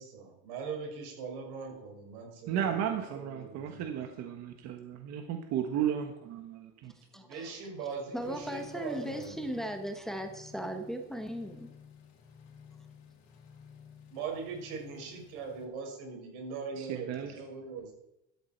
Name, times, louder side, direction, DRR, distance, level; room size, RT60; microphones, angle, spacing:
voice 1, 0.0-3.9 7.1-9.4 14.1-17.9, right 5 dB, 90° right, 1 dB, 6.2 m, -41 dB
voice 2, 2.5-6.9 16.8-17.3, right 9 dB, 50° right, 5 dB, 1.5 m, -34 dB
voice 3, 7.1-7.5 8.1-11.7, equal, ahead, 4 dB, 1.3 m, -37 dB
sound 1, 8.2-15.7, left 6 dB, 60° left, 3.9 m, -53 dB
16.5 x 13.0 x 4.6 m, 0.83 s
cardioid pair, 150°, 33 cm